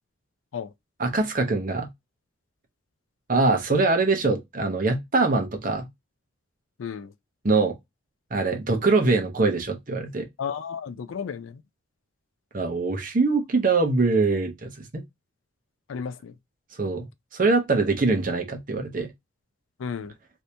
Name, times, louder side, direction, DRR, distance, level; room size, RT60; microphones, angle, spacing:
voice 1, 1.0-1.9 3.3-5.9 7.4-7.8 8.3-10.3 12.5-15.0 16.8-17.1 17.3-19.1, right 3 dB, 40° right, 0.7 m, -23 dB
voice 2, 6.8-7.1 10.4-11.6 15.9-16.3 19.8-20.1, left 6 dB, 75° left, 0.4 m, -33 dB
2.8 x 2.6 x 3.3 m
head